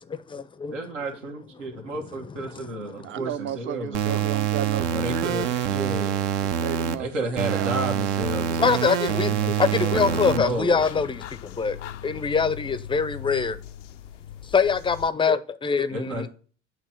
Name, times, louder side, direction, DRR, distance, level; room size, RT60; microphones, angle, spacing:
voice 1, 0.1-0.7 1.7-1.8 2.5-2.7 6.5-6.6 8.6-11.8 12.0-13.6 14.4-16.3, left 5 dB, 15° left, 0.5 m, -24 dB
voice 2, 0.7-4.3 4.9-6.2 7.0-8.9 9.1-11.0 15.9-16.3, right 1 dB, 85° right, 1.4 m, -32 dB
voice 3, 3.0-6.0 6.4-7.1 7.5-7.7, right 10 dB, 35° right, 0.5 m, -34 dB
sound 1, 3.9-6.9 7.4-10.4, right 9 dB, 70° right, 0.8 m, -25 dB
sound 2, 10.1-15.1, left 10 dB, 85° left, 0.5 m, -39 dB
8.0 x 3.0 x 5.0 m
hypercardioid pair, 70°, 35 cm